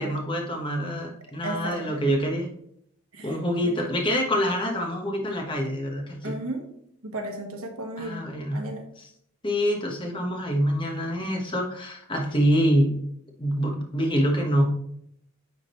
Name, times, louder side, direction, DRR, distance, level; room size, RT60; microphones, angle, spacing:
voice 1, 0.0-2.5 3.2-6.4 8.0-8.6 9.0-9.1 9.4-13.0 13.4-14.7, equal, 25° left, 1 dB, 1.1 m, -26 dB
voice 2, 1.4-2.1 3.1-3.8 6.2-6.7 7.0-8.8, right 2 dB, 85° right, 3 dB, 1.3 m, -35 dB
9.6 x 3.7 x 3.1 m, 0.71 s
head